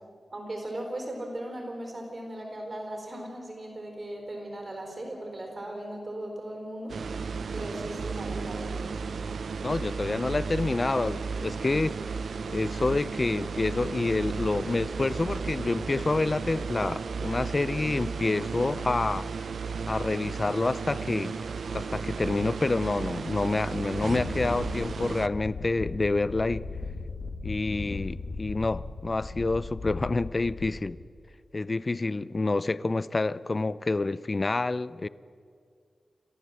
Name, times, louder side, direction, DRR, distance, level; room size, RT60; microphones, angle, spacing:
voice 1, 0.3-7.0 7.5-8.7, right 1 dB, 35° right, 4.4 m, -37 dB
sound 1, 6.9-25.3, right 5 dB, 70° right, 0.5 m, -34 dB
voice 2, 9.6-12.0 12.5-19.3 19.9-21.4 21.7-26.7 27.4-31.0 31.5-35.1, left 3 dB, 30° left, 0.4 m, -28 dB
Wind, 23.9-31.1, left 4 dB, 65° left, 1.6 m, -37 dB
28.0 x 14.5 x 7.6 m
wide cardioid pair, 165°, 0 cm